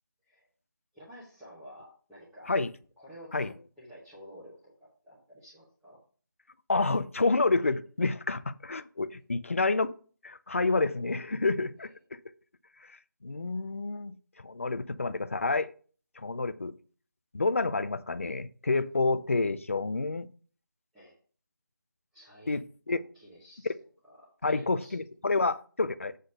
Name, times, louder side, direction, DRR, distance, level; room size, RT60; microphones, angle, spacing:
voice 1, 0.9-2.5 3.0-3.5 3.8-6.0 20.9-21.2 22.1-22.5 22.9-23.7 24.0-25.0, equal, ahead, -15 dB, 1.1 m, -51 dB
voice 2, 6.7-9.9 10.2-11.9 13.2-14.2 14.4-15.7 16.2-16.7 17.3-20.3 22.5-22.6 22.9-23.0 24.4-26.1, left 3 dB, 40° left, 13 dB, 0.4 m, -28 dB
7.9 x 3.9 x 6.3 m, 0.41 s
figure-of-eight pair, 175°, 11 cm